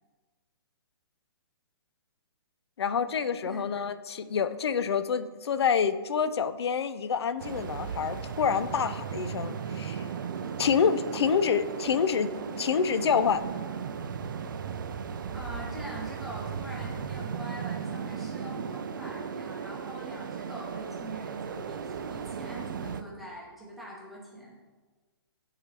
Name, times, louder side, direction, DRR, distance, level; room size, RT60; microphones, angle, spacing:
voice 1, 2.8-10.1 10.6-12.3 12.6-13.4, left 6 dB, 90° left, 12 dB, 0.5 m, -27 dB
sound 1, 7.4-23.0, right 6 dB, 55° right, 0.4 m, -36 dB
voice 2, 15.3-24.6, right 1 dB, ahead, -5 dB, 0.8 m, -43 dB
10.5 x 3.8 x 3.3 m, 1.3 s
hypercardioid pair, 170°, 13 cm